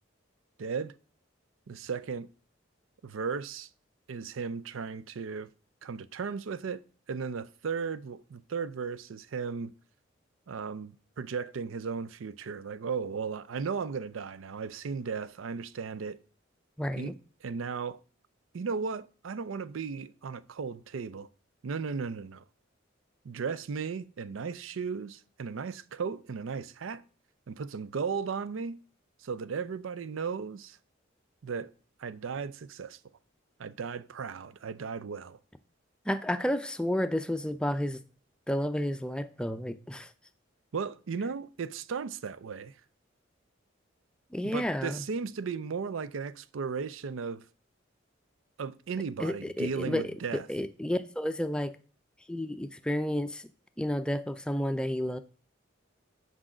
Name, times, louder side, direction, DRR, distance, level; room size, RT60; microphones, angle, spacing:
voice 1, 0.6-0.9 1.7-2.3 3.0-3.7 4.1-5.5 5.8-6.8 7.1-9.7 10.5-16.2 17.0-17.1 17.4-18.0 18.5-21.3 21.6-22.4 23.2-27.0 27.5-28.8 29.2-30.8 31.4-31.7 32.0-33.0 33.6-35.4 40.7-42.8 44.4-47.4 48.6-50.5, right 5 dB, 90° right, 0.5 m, -36 dB
voice 2, 16.8-17.1 36.1-38.0 38.5-40.1 44.3-45.0 49.2-51.8 52.3-53.5 53.8-55.2, equal, 5° left, 0.4 m, -31 dB
6.2 x 5.4 x 4.9 m
head